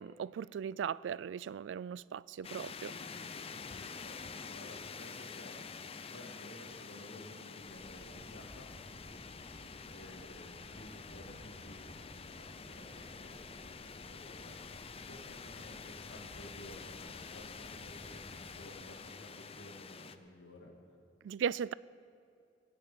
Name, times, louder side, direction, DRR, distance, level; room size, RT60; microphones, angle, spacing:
voice 1, 0.0-2.9 21.2-21.7, right 7 dB, 80° right, 0.3 m, -37 dB
sound 1, 2.4-20.2, left 5 dB, 35° left, 0.6 m, -48 dB
voice 2, 2.8-8.7 9.9-17.1 17.3-20.7, left 1 dB, 85° left, 2.7 m, -54 dB
sound 2, 7.6-18.6, equal, ahead, 2.5 m, -56 dB
20.0 x 7.0 x 8.6 m
head